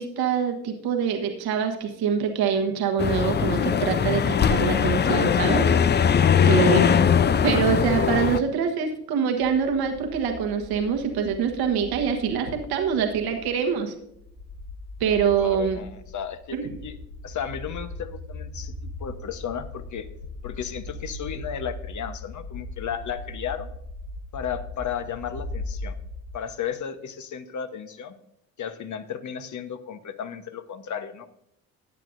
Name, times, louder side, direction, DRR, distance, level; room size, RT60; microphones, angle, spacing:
voice 1, 0.0-5.8 6.5-6.9 7.4-13.9 15.0-15.8 16.5-16.7, right 7 dB, 60° right, 4 dB, 1.4 m, -25 dB
sound 1, 3.0-8.4, left 7 dB, 25° left, 0.5 m, -20 dB
sound 2, 9.4-26.4, left 2 dB, 75° left, 2.3 m, -39 dB
voice 2, 15.4-17.0 17.2-20.1 20.4-23.7 24.3-25.9 26.3-28.2 28.6-31.3, left 8 dB, 45° left, 10 dB, 1.1 m, -34 dB
15.0 x 9.0 x 2.6 m, 0.77 s
hypercardioid pair, 55°, 42 cm